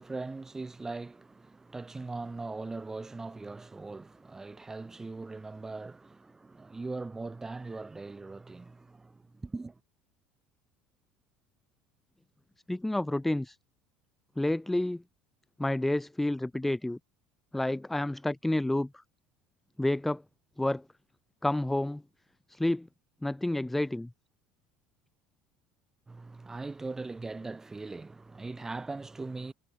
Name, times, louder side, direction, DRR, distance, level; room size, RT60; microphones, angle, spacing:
voice 1, 0.0-9.8 26.1-29.5, right 3 dB, 15° right, 1.8 m, -40 dB
voice 2, 12.7-13.6 14.4-15.0 15.6-17.0 17.5-19.0 19.8-20.2 20.6-20.8 21.4-22.0 22.5-22.9 23.2-24.1, left 1 dB, 5° left, 0.5 m, -29 dB
supercardioid pair, 100°, 3 cm